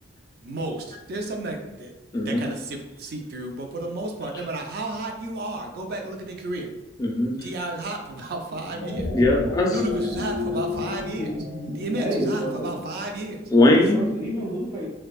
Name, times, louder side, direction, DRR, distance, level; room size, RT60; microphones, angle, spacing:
voice 1, 0.4-1.9 2.2-6.7 7.4-9.1 9.7-11.5 11.8-13.5, right 2 dB, 55° right, 3 dB, 0.4 m, -32 dB
voice 2, 2.1-2.5 7.0-7.7 9.1-9.7 13.5-14.0, left 2 dB, 20° left, 0 dB, 0.3 m, -20 dB
sound 1, 8.6-13.2, left 3 dB, 90° left, 0.4 m, -31 dB
voice 3, 12.0-12.8 13.9-14.9, right 1 dB, 20° right, -8 dB, 0.7 m, -29 dB
2.5 x 2.2 x 2.3 m, 0.96 s
head